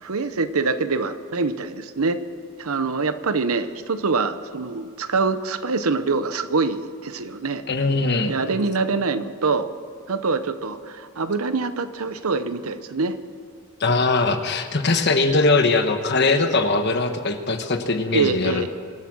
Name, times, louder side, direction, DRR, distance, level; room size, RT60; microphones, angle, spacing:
voice 1, 0.0-2.2 2.6-7.6 8.3-9.7 10.1-13.2 18.1-18.7, right 4 dB, 75° right, 11 dB, 0.9 m, -24 dB
voice 2, 7.7-8.3 13.8-18.7, left 3 dB, 50° left, 7 dB, 1.2 m, -21 dB
24.5 x 8.4 x 6.3 m, 2.3 s
head